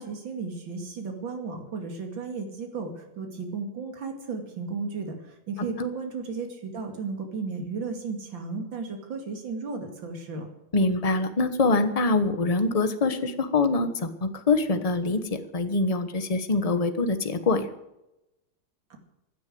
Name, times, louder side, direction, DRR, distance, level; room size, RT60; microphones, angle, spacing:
voice 1, 0.0-10.5 18.9-19.0, right 4 dB, 80° right, 4 dB, 3.1 m, -34 dB
voice 2, 10.7-17.7, left 3 dB, 25° left, 9 dB, 1.0 m, -24 dB
16.5 x 9.9 x 7.8 m, 0.89 s
omnidirectional pair, 2.1 m